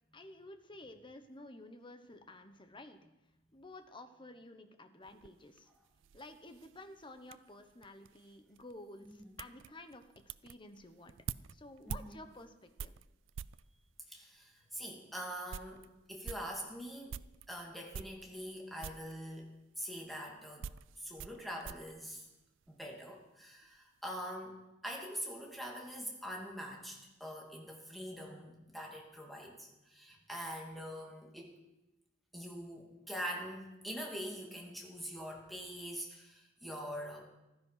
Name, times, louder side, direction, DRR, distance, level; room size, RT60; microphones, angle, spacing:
voice 1, 0.1-3.0 3.5-5.7 6.1-11.1 11.5-13.0, left 2 dB, 25° left, 7 dB, 1.2 m, -52 dB
sound 1, 5.0-13.7 14.4-14.5 14.9-15.0 15.3-17.5 17.9-18.6 18.8-19.2 20.0-22.9 23.2-23.8, right 7 dB, 80° right, 0.4 m, -48 dB
voice 2, 9.0-9.4 11.9-12.2 14.1-17.2 17.5-20.7 21.0-22.3 22.7-31.6 32.3-37.2, equal, ahead, -1 dB, 2.6 m, -44 dB
15.0 x 13.0 x 5.9 m, 0.98 s
head